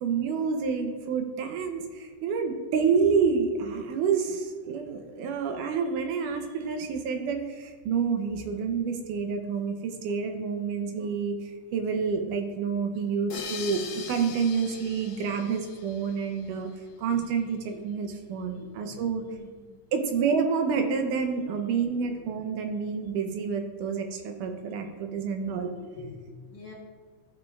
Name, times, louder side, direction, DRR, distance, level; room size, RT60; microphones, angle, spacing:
voice 1, 0.0-11.4 11.7-16.7 17.0-17.6 17.8-19.2 19.9-25.7, right 6 dB, 80° right, 5 dB, 2.2 m, -28 dB
sound 1, 13.3-16.6, left 7 dB, 80° left, 2.2 m, -41 dB
voice 2, 18.5-19.8 22.0-22.1 26.0-26.7, left 3 dB, 60° left, -2 dB, 1.8 m, -46 dB
14.0 x 5.3 x 2.3 m, 1.5 s
omnidirectional pair, 3.8 m